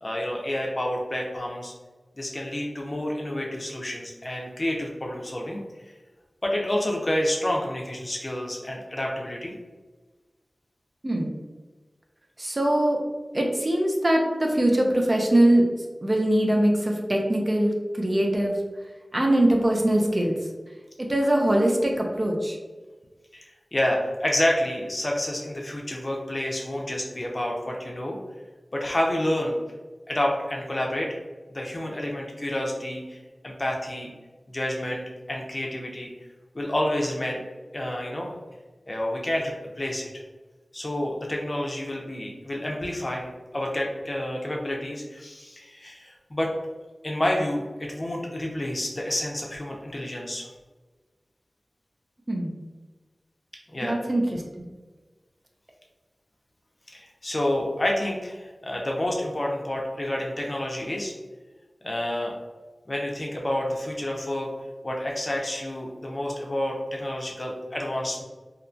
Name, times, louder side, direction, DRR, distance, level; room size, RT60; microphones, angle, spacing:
voice 1, 0.0-1.7 2.2-5.9 6.4-9.5 23.3-28.2 28.7-29.6 30.1-31.2 31.5-34.1 34.5-36.1 36.5-37.4 37.7-38.3 38.9-40.1 40.7-46.5 47.0-50.5 53.7-54.0 56.9-61.1 61.8-62.3 62.9-64.5 64.8-68.2, left 1 dB, 40° left, -1 dB, 0.5 m, -29 dB
voice 2, 12.4-13.0 13.3-15.6 16.0-18.5 19.1-20.3 21.1-22.6 52.3-52.5 53.8-54.7, right 1 dB, 40° right, 0 dB, 0.5 m, -22 dB
2.8 x 2.2 x 2.6 m, 1.3 s
wide cardioid pair, 55°, 0 cm